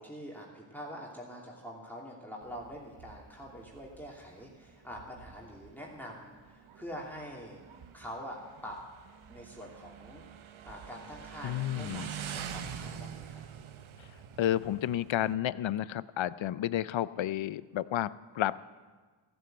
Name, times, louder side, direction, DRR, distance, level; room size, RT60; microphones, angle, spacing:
voice 1, 0.0-7.6 7.9-8.8 9.3-10.2 10.6-13.4, equal, 5° left, -3 dB, 2.8 m, -45 dB
Motorcycle, 2.4-15.3, right 8 dB, 75° right, 0.9 m, -46 dB
voice 2, 11.4-12.1 14.4-18.6, left 12 dB, 70° left, 18 dB, 0.6 m, -31 dB
15.0 x 7.9 x 7.9 m, 1.4 s
cardioid pair, 55°, 49 cm